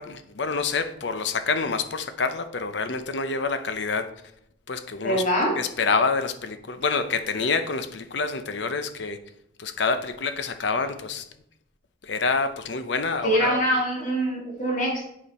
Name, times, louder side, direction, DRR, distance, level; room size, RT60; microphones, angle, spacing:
voice 1, 0.0-4.1 4.7-5.2 5.6-9.2 9.6-11.3 12.0-13.6, left 4 dB, 65° left, 9 dB, 0.7 m, -27 dB
voice 2, 5.0-5.6 13.2-15.1, right 1 dB, 45° left, -1 dB, 2.1 m, -24 dB
8.4 x 5.1 x 4.2 m, 0.77 s
head